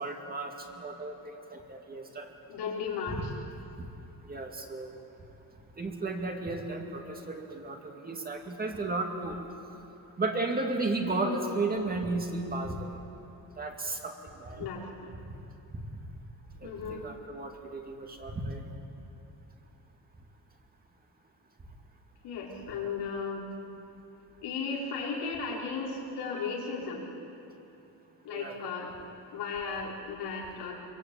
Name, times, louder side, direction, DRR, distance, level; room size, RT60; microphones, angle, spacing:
voice 1, 0.0-2.3 3.8-3.9 4.3-5.0 5.8-9.4 10.2-12.9 13.6-14.7 15.7-15.8 16.6-18.6 28.3-28.6, right 3 dB, 20° right, 2 dB, 2.3 m, -34 dB
voice 2, 2.5-3.4 11.1-11.4 14.6-15.1 16.6-17.0 22.2-23.5 24.4-27.0 28.2-28.9 29.3-30.7, left 5 dB, 85° left, -3 dB, 5.4 m, -35 dB
25.5 x 23.0 x 8.8 m, 2.9 s
cardioid pair, 170°, 40 cm